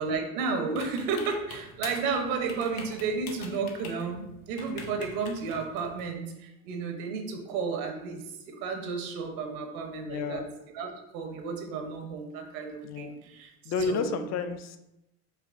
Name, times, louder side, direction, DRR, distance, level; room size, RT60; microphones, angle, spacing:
voice 1, 0.0-10.4 10.7-14.2, right 5 dB, 75° right, 4 dB, 0.8 m, -32 dB
sound 1, 0.7-6.1, left 4 dB, 85° left, 0.7 m, -45 dB
voice 2, 10.1-10.5 12.8-13.1 13.6-14.8, left 5 dB, 40° left, 9 dB, 0.5 m, -31 dB
4.6 x 3.1 x 2.5 m, 0.88 s
hypercardioid pair, 60°, 42 cm